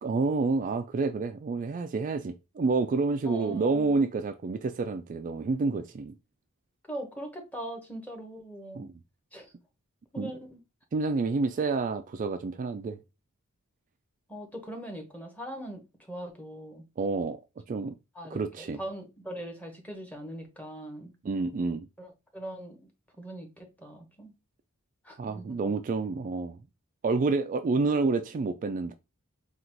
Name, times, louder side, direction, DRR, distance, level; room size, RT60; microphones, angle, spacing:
voice 1, 0.0-6.1 8.7-8.9 10.2-10.3 10.9-13.0 17.0-17.4 17.7-18.0 18.3-18.8 21.2-21.9 25.2-26.6 27.0-28.9, right 3 dB, 35° right, 0.3 m, -28 dB
voice 2, 3.3-4.0 6.9-8.9 9.3-9.5 10.1-10.6 14.3-16.8 18.1-21.1 22.0-22.8 23.2-24.3 25.0-25.7, right 1 dB, 5° left, 1.0 m, -41 dB
3.9 x 2.4 x 4.4 m
head